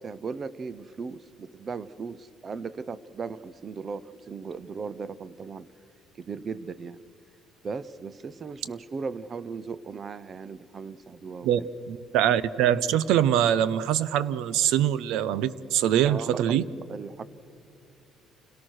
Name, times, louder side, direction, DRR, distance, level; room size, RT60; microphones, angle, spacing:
voice 1, 0.0-5.7 6.2-7.0 7.6-11.7 16.1-17.2, right 5 dB, 25° right, 18 dB, 0.6 m, -37 dB
voice 2, 11.9-16.6, right 10 dB, 80° right, 18 dB, 0.7 m, -23 dB
28.5 x 17.5 x 6.4 m, 2.8 s
cardioid pair, 165°, 0 cm